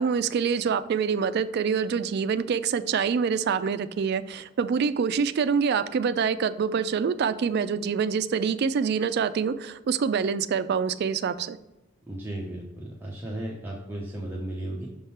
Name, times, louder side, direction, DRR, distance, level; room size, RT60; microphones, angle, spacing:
voice 1, 0.0-11.6, right 6 dB, 50° right, 13 dB, 0.3 m, -26 dB
voice 2, 12.0-14.9, right 1 dB, 10° right, -4 dB, 0.7 m, -35 dB
6.3 x 3.7 x 4.2 m, 0.99 s
head